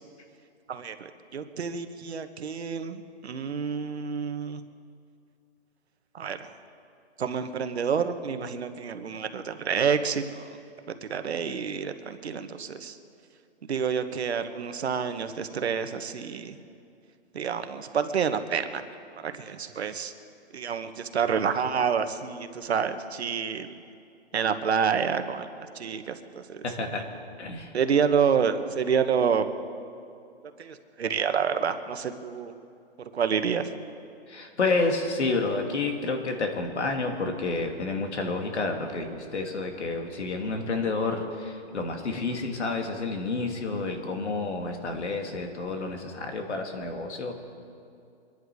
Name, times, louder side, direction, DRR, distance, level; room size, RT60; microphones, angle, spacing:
voice 1, 0.7-4.6 6.1-6.5 7.2-10.5 11.0-13.0 13.7-16.6 17.3-18.8 19.2-20.1 20.5-23.7 24.3-25.5 25.7-26.6 27.7-29.5 30.6-32.5 33.1-33.7, right 6 dB, 70° right, 8 dB, 1.2 m, -28 dB
voice 2, 26.6-27.0 27.4-27.7 34.3-47.3, left 3 dB, 90° left, 3 dB, 2.6 m, -29 dB
24.5 x 11.0 x 4.8 m, 2.4 s
hypercardioid pair, 175°, 33 cm